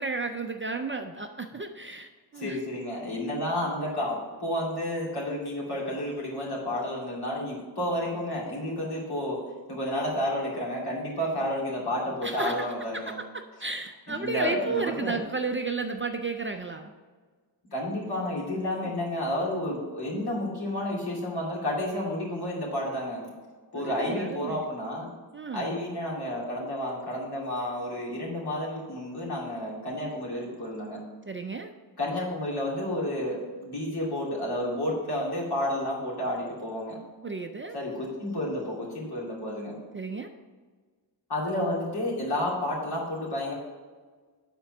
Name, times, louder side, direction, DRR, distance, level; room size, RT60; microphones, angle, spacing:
voice 1, 0.0-2.6 12.2-12.7 12.9-16.9 18.7-19.0 23.8-24.7 25.3-25.8 31.3-31.7 37.2-37.8 39.9-40.3, right 3 dB, 30° right, 5 dB, 0.4 m, -33 dB
voice 2, 2.3-9.4 9.7-13.2 14.1-15.2 17.7-23.3 23.7-25.1 25.5-31.0 32.0-37.0 37.7-39.8 41.3-43.6, left 1 dB, 60° left, -4 dB, 2.7 m, -31 dB
8.4 x 4.4 x 5.9 m, 1.5 s
wide cardioid pair, 150°, 44 cm